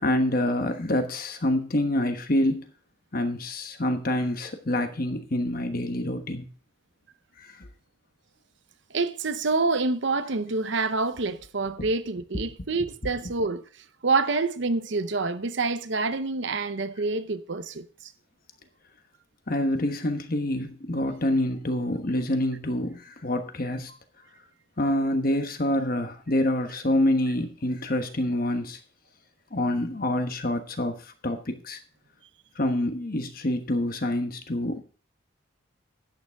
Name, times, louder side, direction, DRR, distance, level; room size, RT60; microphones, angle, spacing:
voice 1, 0.0-2.6 3.1-6.5 7.4-7.7 11.8-11.9 19.5-23.9 24.8-28.8 29.5-31.8 32.6-34.8, left 1 dB, 45° left, 1.2 m, -27 dB
voice 2, 8.9-13.6 14.0-18.1, right 3 dB, 60° right, 0.7 m, -27 dB
11.5 x 8.9 x 3.5 m
head